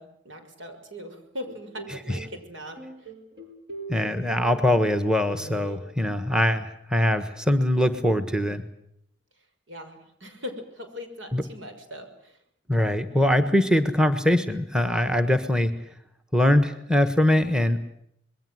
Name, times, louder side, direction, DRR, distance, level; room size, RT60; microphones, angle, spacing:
voice 1, 0.0-3.1 9.7-12.4, left 1 dB, 85° right, 6 dB, 6.0 m, -40 dB
sound 1, 1.5-2.3 2.8-5.0 5.2-5.8, right 4 dB, 60° right, 7.0 m, -41 dB
voice 2, 3.9-8.6 11.3-11.4 12.7-15.7 16.3-17.8, left 1 dB, 5° right, 10 dB, 1.3 m, -22 dB
26.5 x 21.5 x 7.9 m, 0.74 s
head